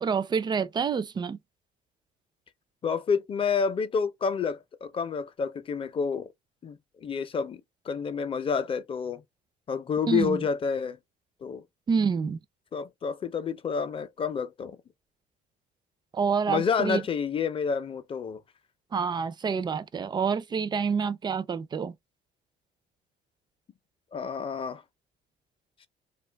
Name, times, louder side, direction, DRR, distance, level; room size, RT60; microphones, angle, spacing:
voice 1, 0.0-1.4 10.1-10.4 11.9-12.4 16.1-17.0 18.9-22.0, right 6 dB, 25° right, 0.3 m, -27 dB
voice 2, 2.8-6.3 6.6-7.6 7.9-9.2 9.7-11.0 11.4-11.6 12.7-14.8 16.5-18.4 24.1-24.8, left 6 dB, 30° left, 0.5 m, -29 dB
2.4 x 2.3 x 3.3 m
cardioid pair, 110°, 17 cm